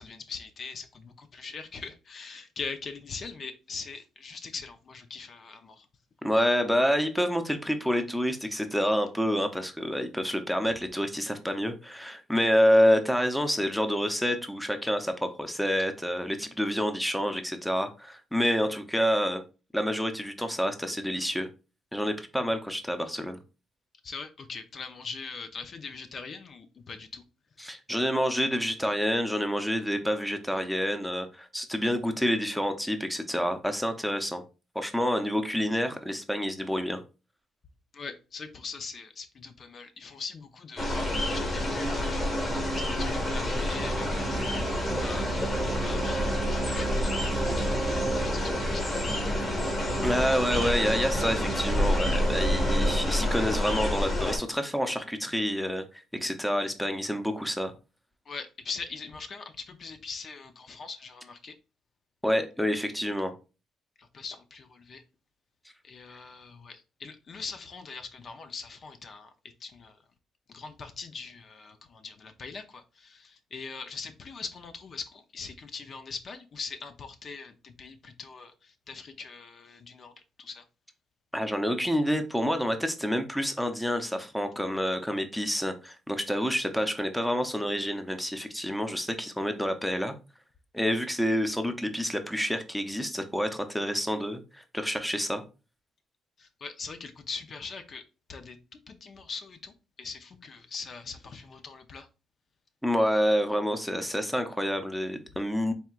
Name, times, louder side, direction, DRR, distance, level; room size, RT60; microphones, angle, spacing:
voice 1, 0.0-5.9 24.0-27.2 37.9-42.3 42.8-49.0 49.4-49.5 58.3-61.5 64.0-65.0 65.8-69.3 69.6-70.0 70.5-80.6 96.4-98.0 98.3-102.1, left 4 dB, 50° left, 0.6 m, -42 dB
voice 2, 6.2-19.4 19.7-21.5 21.9-23.4 27.6-34.4 34.7-37.0 50.0-55.8 56.2-57.7 62.2-63.3 81.3-90.1 90.7-95.4 102.8-105.7, equal, 5° left, 0.6 m, -28 dB
sound 1, 40.8-54.4, left 1 dB, 30° left, 1.5 m, -28 dB
sound 2, 43.7-53.0, right 4 dB, 40° right, 0.4 m, -34 dB
4.4 x 3.4 x 2.4 m
cardioid pair, 90°, 0 cm